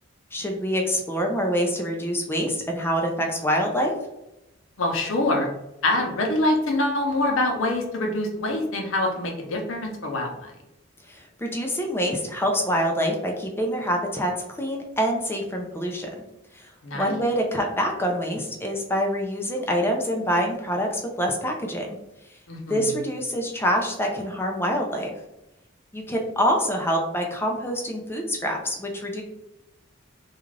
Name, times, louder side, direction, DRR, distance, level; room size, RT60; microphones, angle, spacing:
voice 1, 0.3-3.9 11.1-16.1 16.5-22.0 22.7-25.1 25.9-29.2, equal, 10° left, 1 dB, 0.4 m, -26 dB
voice 2, 4.8-5.5 5.8-10.5 16.8-17.2 22.5-23.0, left 1 dB, 75° left, 2 dB, 0.6 m, -25 dB
2.4 x 2.4 x 3.1 m, 0.92 s
head